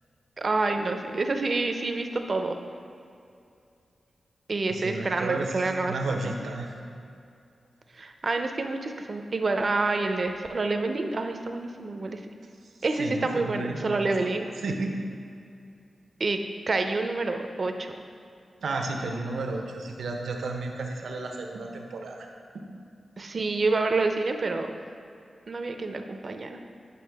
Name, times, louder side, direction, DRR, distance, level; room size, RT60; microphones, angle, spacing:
voice 1, 0.4-2.6 4.5-6.3 8.0-12.2 12.8-14.5 16.2-16.4 16.7-17.9 23.2-24.7 25.5-26.6, right 3 dB, 45° right, 6 dB, 0.5 m, -28 dB
voice 2, 4.7-6.7 13.0-14.1 14.6-15.0 18.6-22.3 22.5-22.7, right 3 dB, 85° right, 2 dB, 0.8 m, -32 dB
9.2 x 5.8 x 3.5 m, 2.5 s
wide cardioid pair, 120°, 0 cm